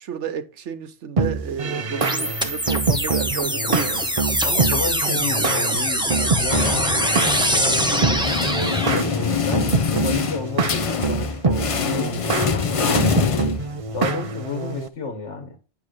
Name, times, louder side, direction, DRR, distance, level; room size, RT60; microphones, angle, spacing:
voice 1, 0.0-4.0, right 7 dB, 90° right, 1.2 m, -31 dB
sound 1, 1.2-14.9, right 4 dB, 40° right, 0.6 m, -26 dB
sound 2, 2.0-9.0, equal, 5° right, 1.0 m, -23 dB
voice 2, 3.7-4.0 4.4-7.0 7.5-8.3 8.8-13.6 13.9-15.6, left 3 dB, 90° left, 1.6 m, -31 dB
sound 3, 6.1-14.1, left 6 dB, 40° left, 0.5 m, -25 dB
9.7 x 3.3 x 6.5 m
omnidirectional pair, 1.2 m